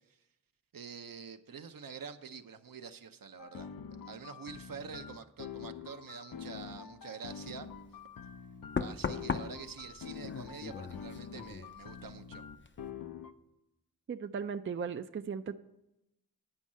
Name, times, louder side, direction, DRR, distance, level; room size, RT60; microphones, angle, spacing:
voice 1, 0.7-3.7 4.0-7.7 8.8-12.4, right 6 dB, 65° right, 8 dB, 0.7 m, -46 dB
sound 1, 3.4-13.3, left 7 dB, 70° left, 0.6 m, -46 dB
Knock, 7.7-7.9 8.8-12.2 12.5-12.9, left 5 dB, 35° left, 0.5 m, -39 dB
voice 2, 14.1-15.6, right 6 dB, 35° right, 8 dB, 0.4 m, -37 dB
9.8 x 5.4 x 7.3 m, 0.89 s
wide cardioid pair, 75°, 36 cm